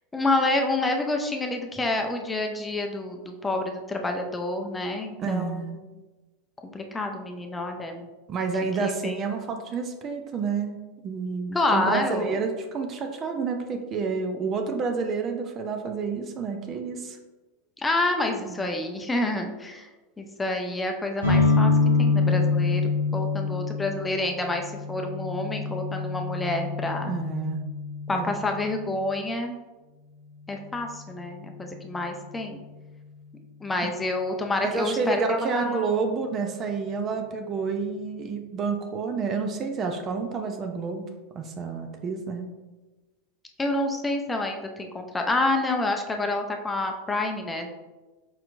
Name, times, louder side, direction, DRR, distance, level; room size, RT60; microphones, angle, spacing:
voice 1, 0.1-5.8 6.6-8.1 8.8-9.2 11.5-12.4 17.8-19.9 20.2-21.7 22.0-27.1 28.1-29.6 30.5-32.6 33.6-35.9 43.6-47.7, left 2 dB, 15° left, 3 dB, 0.6 m, -28 dB
voice 2, 5.2-5.7 8.3-10.7 11.0-17.2 18.6-18.7 27.0-27.6 28.1-28.3 34.6-41.1 41.3-42.5, right 4 dB, 35° right, 5 dB, 0.6 m, -29 dB
sound 1, 21.2-28.8, left 4 dB, 85° right, 1.4 m, -25 dB
4.8 x 4.3 x 2.6 m, 1.2 s
figure-of-eight pair, 85°, 0 cm